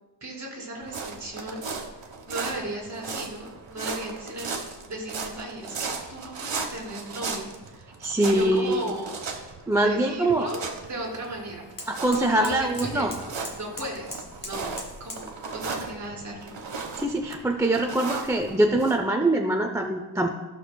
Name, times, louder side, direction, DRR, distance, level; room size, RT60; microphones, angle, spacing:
voice 1, 0.2-1.7 2.0-7.9 8.2-9.1 9.8-11.6 12.1-13.1 13.5-16.6, right 1 dB, 40° right, -2 dB, 2.5 m, -36 dB
sound 1, 0.8-19.0, right 4 dB, 90° right, 1.2 m, -37 dB
voice 2, 8.0-8.8 9.7-10.5 11.9-13.2 17.0-20.3, right 1 dB, 5° right, 3 dB, 0.4 m, -23 dB
sound 2, 8.7-15.3, left 1 dB, 30° left, 1.9 m, -43 dB
15.0 x 6.3 x 2.2 m, 1.2 s
wide cardioid pair, 175°, 43 cm